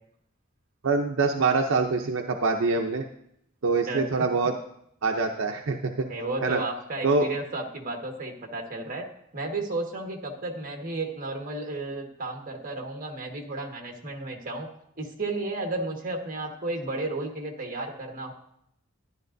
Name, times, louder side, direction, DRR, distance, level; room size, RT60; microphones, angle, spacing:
voice 1, 0.8-3.0 3.6-4.5 5.0-6.1 6.4-6.6 7.0-7.3, right 4 dB, 75° right, 3 dB, 0.6 m, -24 dB
voice 2, 6.1-9.0 9.3-14.7 15.0-18.3, right 2 dB, 45° right, 2 dB, 1.5 m, -33 dB
12.0 x 11.0 x 2.6 m, 0.74 s
head